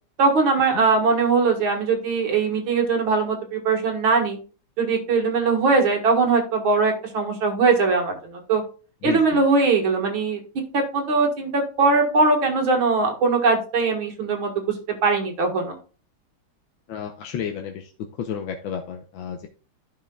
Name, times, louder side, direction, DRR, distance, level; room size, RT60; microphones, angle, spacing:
voice 1, 0.2-4.4 4.8-8.6 9.0-10.4 10.7-14.5 15.0-15.7, right 4 dB, 70° right, 2 dB, 2.5 m, -21 dB
voice 2, 9.0-9.4 16.9-17.9 18.2-19.5, left 8 dB, 70° left, 3 dB, 1.5 m, -31 dB
14.5 x 5.8 x 2.3 m, 0.37 s
omnidirectional pair, 2.3 m